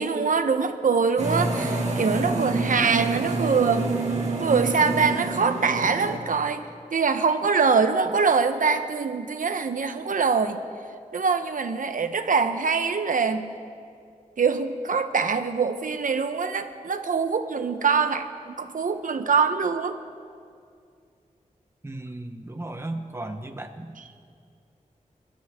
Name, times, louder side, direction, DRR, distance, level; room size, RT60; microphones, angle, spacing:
voice 1, 0.0-3.9 4.4-10.6 11.1-13.5 14.4-20.0, right 5 dB, 75° right, 8 dB, 1.0 m, -24 dB
sound 1, 1.2-6.2, right 3 dB, 55° right, 2.2 m, -27 dB
voice 2, 21.8-24.0, right 2 dB, 20° right, 5 dB, 1.1 m, -35 dB
28.5 x 13.0 x 3.7 m, 2.3 s
wide cardioid pair, 115°, 14 cm